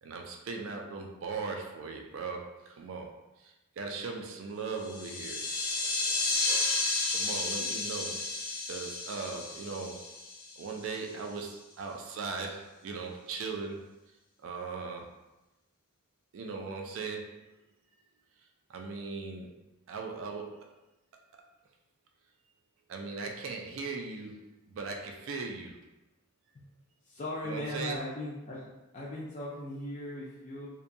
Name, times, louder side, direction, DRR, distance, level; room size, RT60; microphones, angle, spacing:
voice 1, 0.0-5.4 7.1-10.1 10.6-13.9 14.4-15.1 16.3-17.5 18.7-19.5 19.9-20.7 22.9-25.8 27.4-28.0, right 4 dB, 60° right, 2 dB, 0.3 m, -39 dB
sound 1, 4.8-10.9, left 3 dB, 80° left, 0.6 m, -32 dB
voice 2, 27.0-28.7 28.9-30.7, left 1 dB, 30° left, -6 dB, 0.3 m, -38 dB
2.6 x 2.2 x 2.5 m, 0.99 s
head